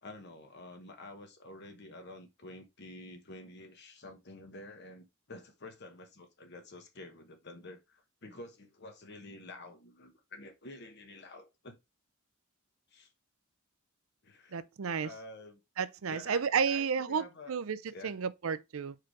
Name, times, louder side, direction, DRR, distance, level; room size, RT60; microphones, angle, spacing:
voice 1, 0.0-11.8 12.9-13.1 14.2-14.7 15.0-15.6 16.1-17.6 17.9-18.1, left 2 dB, 50° left, 1.1 m, -49 dB
voice 2, 14.5-15.1 15.8-19.0, right 6 dB, 75° right, 0.5 m, -32 dB
4.9 x 4.7 x 4.6 m
head